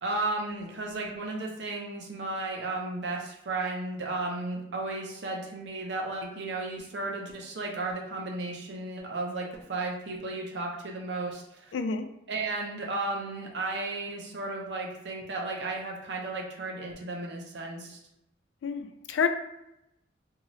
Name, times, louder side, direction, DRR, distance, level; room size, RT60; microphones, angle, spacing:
voice 1, 0.0-11.7 12.3-18.0, right 2 dB, 70° right, -1 dB, 0.6 m, -34 dB
voice 2, 11.7-12.1 18.6-19.3, left 6 dB, 90° left, 8 dB, 0.3 m, -28 dB
2.7 x 2.4 x 3.0 m, 0.85 s
head